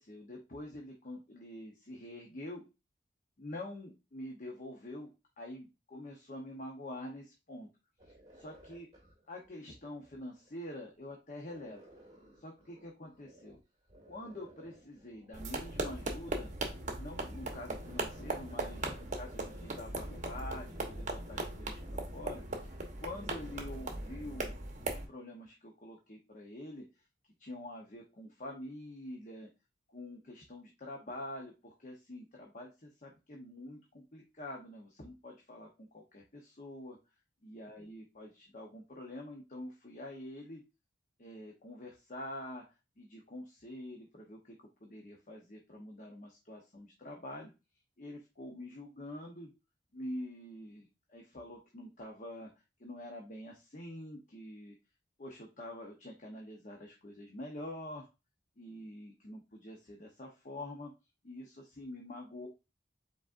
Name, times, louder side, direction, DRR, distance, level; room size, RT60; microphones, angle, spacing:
voice 1, 0.0-2.6 3.4-7.7 8.1-8.9 9.3-11.9 12.4-13.6 14.1-16.5 17.0-26.8 27.4-29.5 29.9-37.0 37.4-40.6 41.2-42.7 43.0-44.6 44.8-47.5 48.0-49.5 49.9-52.5 52.8-54.7 55.2-58.1 58.6-60.9 61.2-62.5, left 1 dB, 45° left, 0 dB, 0.9 m, -46 dB
sound 1, 8.0-10.8 11.4-13.6 13.9-15.7 16.7-24.5, right 1 dB, 25° right, 2.1 m, -58 dB
sound 2, 15.3-25.1, right 2 dB, 40° right, 1.0 m, -39 dB
5.0 x 4.2 x 2.5 m, 0.27 s
head